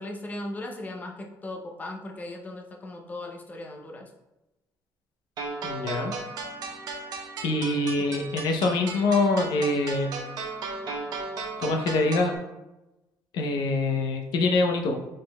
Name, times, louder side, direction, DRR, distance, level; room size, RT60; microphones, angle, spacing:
voice 1, 0.0-4.1 8.0-8.1, left 1 dB, 20° left, 2 dB, 0.6 m, -38 dB
sound 1, 5.4-12.4, right 3 dB, 65° right, 0.8 m, -36 dB
voice 2, 5.6-6.1 7.4-10.1 11.6-12.3 13.3-15.0, left 2 dB, 75° left, 3 dB, 0.7 m, -24 dB
5.1 x 3.8 x 2.2 m, 0.99 s
cardioid pair, 150°, 7 cm